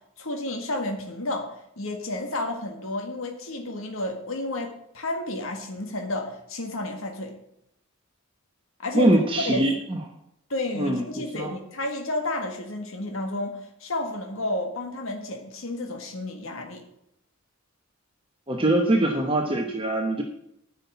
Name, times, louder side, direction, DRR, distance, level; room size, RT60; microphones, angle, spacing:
voice 1, 0.2-7.4 8.8-9.1 9.4-9.6 10.5-16.8, left 1 dB, 70° left, 4 dB, 1.6 m, -31 dB
voice 2, 8.9-10.0 10.8-11.5 18.5-20.2, right 1 dB, 25° right, 2 dB, 1.0 m, -23 dB
10.0 x 5.7 x 8.4 m, 0.77 s
head